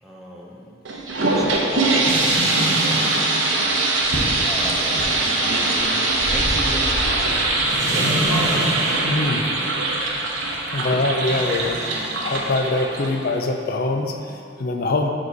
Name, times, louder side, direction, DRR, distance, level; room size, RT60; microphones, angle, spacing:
voice 1, 0.0-0.7 1.2-3.8 4.4-5.1 5.4-7.3 7.9-9.1 9.5-9.8, equal, ahead, -4 dB, 0.8 m, -35 dB
sound 1, 0.8-13.4, right 2 dB, 80° right, 0.9 m, -22 dB
sound 2, 2.0-9.3 11.2-12.6, right 1 dB, 40° right, 1.0 m, -31 dB
sound 3, 4.0-9.3, equal, 80° left, 1.2 m, -31 dB
voice 2, 9.0-9.5 10.7-11.8 12.2-15.1, left 2 dB, 50° left, 4 dB, 0.5 m, -23 dB
6.1 x 5.1 x 4.0 m, 2.5 s
head